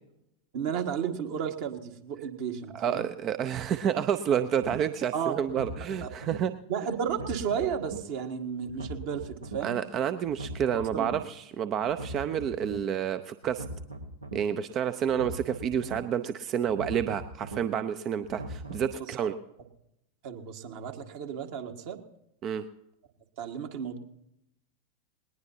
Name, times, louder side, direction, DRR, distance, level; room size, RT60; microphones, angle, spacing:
voice 1, 0.5-3.1 5.1-5.3 6.0-6.1 6.7-9.8 10.8-11.1 19.1-19.3 20.2-22.0 23.4-24.0, right 7 dB, 50° right, 4 dB, 1.8 m, -33 dB
voice 2, 2.7-6.5 9.6-13.6 14.3-19.3 22.4-22.7, right 8 dB, 30° right, 11 dB, 0.7 m, -29 dB
sound 1, 4.6-4.8 5.4-6.4 7.0-8.0 8.6-9.6 10.2-11.2 11.8-12.8 13.4-14.4 15.0-16.0 16.6-17.6 18.2-18.9, right 1 dB, 80° right, 1.7 m, -40 dB
20.0 x 19.5 x 2.8 m, 0.83 s
figure-of-eight pair, 90°, 0 cm